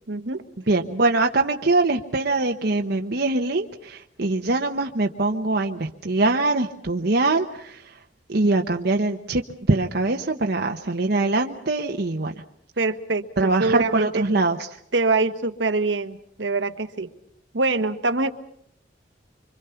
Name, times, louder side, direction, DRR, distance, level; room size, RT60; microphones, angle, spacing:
voice 1, 0.1-0.4 12.8-14.2 14.9-17.1 17.5-18.3, right 3 dB, 85° right, 9 dB, 1.4 m, -24 dB
voice 2, 0.7-7.8 8.3-9.4 9.7-12.3 13.4-14.7, right 2 dB, 60° right, 3 dB, 1.1 m, -23 dB
26.0 x 25.5 x 5.8 m, 0.72 s
head